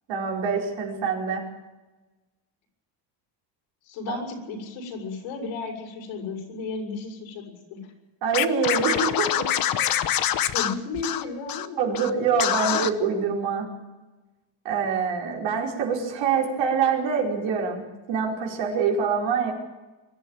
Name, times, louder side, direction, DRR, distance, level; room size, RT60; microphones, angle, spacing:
voice 1, 0.1-1.5 4.1-4.2 8.2-9.3 9.7-9.9 11.8-13.7 14.7-17.8 18.1-19.5, right 6 dB, 70° right, -1 dB, 5.2 m, -25 dB
voice 2, 3.8-7.8 9.3-9.6 10.4-11.9, left 4 dB, 85° left, 1 dB, 6.9 m, -34 dB
Scratching (performance technique), 8.3-11.7 11.9-12.1 12.4-12.9, left 11 dB, 45° left, 1.0 m, -25 dB
23.5 x 12.5 x 9.1 m, 1.1 s
cardioid pair, 150°, 48 cm